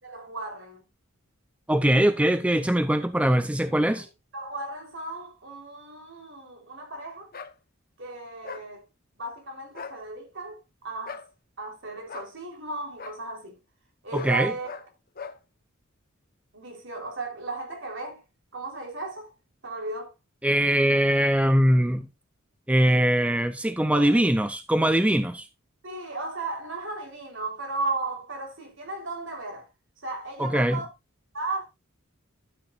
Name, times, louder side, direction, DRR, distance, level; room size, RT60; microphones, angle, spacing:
voice 1, 0.0-0.8 3.9-4.0 4.3-7.3 8.0-8.8 9.2-11.2 11.6-13.6 14.0-14.7 16.5-18.2 18.5-19.3 19.6-20.1 23.9-24.2 25.8-29.7 30.0-30.9 31.3-31.6, right 3 dB, 60° right, 3.7 m, -35 dB
voice 2, 1.7-4.1 14.1-14.5 20.4-22.1 22.7-25.5 30.4-30.8, right 1 dB, 5° right, 0.5 m, -22 dB
sound 1, 7.3-7.5 8.4-8.7 9.7-10.0 11.1-11.3 12.1-12.3 13.0-13.2 14.1-14.4 14.6-14.9 15.2-15.4, left 5 dB, 45° left, 0.9 m, -40 dB
12.0 x 8.9 x 2.4 m
head